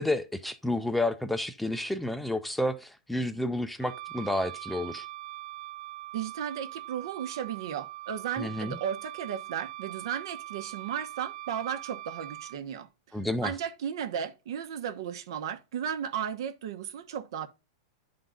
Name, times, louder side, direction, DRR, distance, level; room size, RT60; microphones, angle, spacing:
voice 1, 0.0-5.1 8.4-8.8 13.1-13.5, left 1 dB, 5° left, 0.5 m, -30 dB
Wind instrument woodwind instrument, 3.8-12.6, right 16 dB, 50° right, 0.6 m, -42 dB
voice 2, 6.1-17.5, right 8 dB, 65° right, 1.0 m, -35 dB
10.5 x 3.8 x 3.9 m
supercardioid pair, 145°, 3 cm